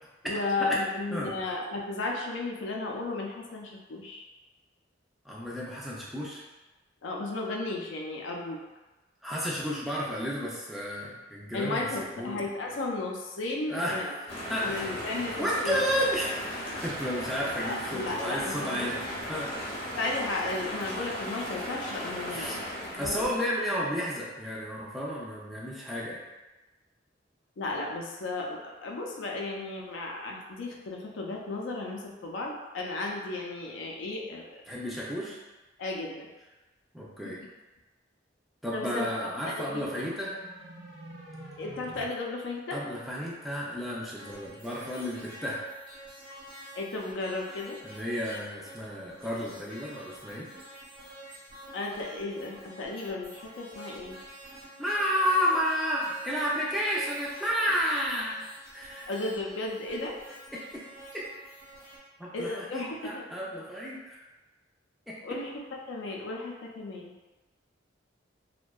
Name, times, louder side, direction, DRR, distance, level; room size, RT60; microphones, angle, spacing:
voice 1, 0.2-4.2 7.0-8.6 11.5-14.1 14.6-15.8 17.6-18.9 19.9-23.3 27.6-34.4 35.8-36.3 37.2-37.3 38.7-39.1 39.5-40.1 41.6-42.8 46.7-47.8 51.7-54.2 59.1-60.2 62.3-63.3 65.2-65.5 65.9-67.1, left 2 dB, 70° left, -1 dB, 0.4 m, -34 dB
voice 2, 5.3-6.4 9.2-11.9 12.2-12.5 13.7-14.9 15.4-19.0 19.3-19.6 22.3-22.6 22.9-26.2 34.7-35.4 36.9-37.4 38.6-40.4 42.7-45.7 47.8-50.5 54.8-58.4 58.7-59.1 60.5-60.8 62.2-64.2 65.1-65.2, equal, ahead, -6 dB, 0.3 m, -32 dB
sound 1, 14.3-23.4, equal, 30° left, 0.7 m, -37 dB
sound 2, 38.9-42.1, right 1 dB, 60° right, 0.5 m, -48 dB
sound 3, 44.1-62.0, right 1 dB, 85° right, 0.9 m, -48 dB
2.6 x 2.1 x 2.2 m, 1.1 s
head